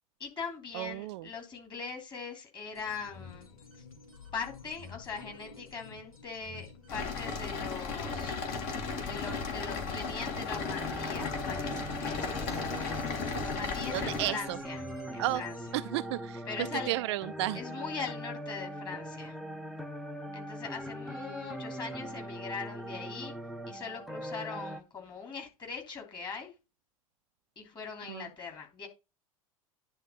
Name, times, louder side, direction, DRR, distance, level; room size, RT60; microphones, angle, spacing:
voice 1, 0.2-3.5 4.3-8.3 9.0-12.5 13.4-14.8 15.1-15.5 16.5-16.9 17.5-19.3 20.3-23.3 23.7-26.5 27.6-28.9, left 5 dB, 25° left, 3.0 m, -41 dB
voice 2, 0.7-1.3 13.9-14.6 15.2-15.4 15.7-17.6 28.1-28.3, right 15 dB, 50° right, 0.4 m, -33 dB
sound 1, 2.7-15.7, left 4 dB, 75° left, 2.5 m, -50 dB
sound 2, 6.9-14.3, left 4 dB, 45° left, 2.2 m, -35 dB
sound 3, 10.5-24.8, equal, ahead, 0.6 m, -41 dB
10.0 x 3.5 x 5.2 m
figure-of-eight pair, 85°, 19 cm